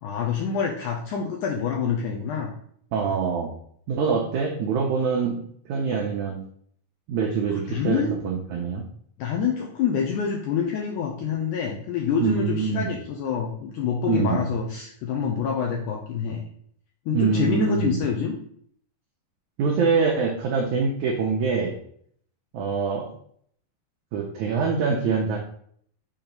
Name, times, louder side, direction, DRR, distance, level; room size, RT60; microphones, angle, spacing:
voice 1, 0.0-2.5 7.5-8.1 9.2-16.5 17.1-18.3, left 6 dB, 85° left, 0 dB, 1.8 m, -26 dB
voice 2, 2.9-3.5 3.9-5.4 5.6-6.4 7.1-8.8 12.2-12.9 14.0-14.5 17.1-18.0 19.6-21.8 22.5-23.1 24.1-25.4, right 5 dB, 85° right, 1 dB, 1.6 m, -24 dB
6.3 x 2.9 x 5.1 m, 0.62 s
omnidirectional pair, 4.3 m